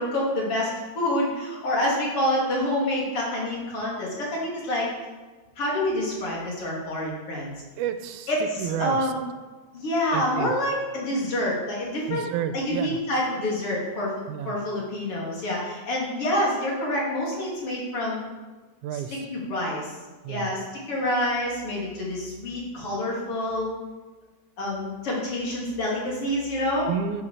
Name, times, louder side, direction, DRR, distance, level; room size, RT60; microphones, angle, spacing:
voice 1, 0.0-4.9 5.6-7.5 8.3-9.2 9.7-12.2 12.5-14.1 14.5-18.2 18.9-19.0 19.3-19.9 20.3-23.7 24.6-26.9, left 1 dB, 45° left, -4 dB, 3.8 m, -27 dB
voice 2, 7.8-8.3 8.6-9.0 10.1-10.5 12.1-13.0 14.3-14.6 18.8-19.3 20.2-20.5 26.9-27.2, right 9 dB, 85° right, 10 dB, 2.2 m, -30 dB
8.9 x 7.9 x 6.8 m, 1.3 s
omnidirectional pair, 3.5 m